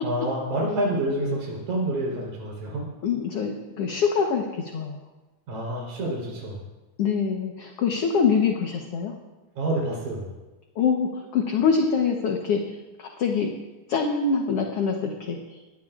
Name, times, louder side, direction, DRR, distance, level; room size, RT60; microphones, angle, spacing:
voice 1, 0.0-2.8 5.5-6.6 9.6-10.3, right 1 dB, 75° right, -4 dB, 5.5 m, -28 dB
voice 2, 3.0-5.0 7.0-9.2 10.8-13.5 13.9-15.6, left 5 dB, 60° left, 2 dB, 1.8 m, -25 dB
23.0 x 18.0 x 2.5 m, 1.2 s
omnidirectional pair, 3.6 m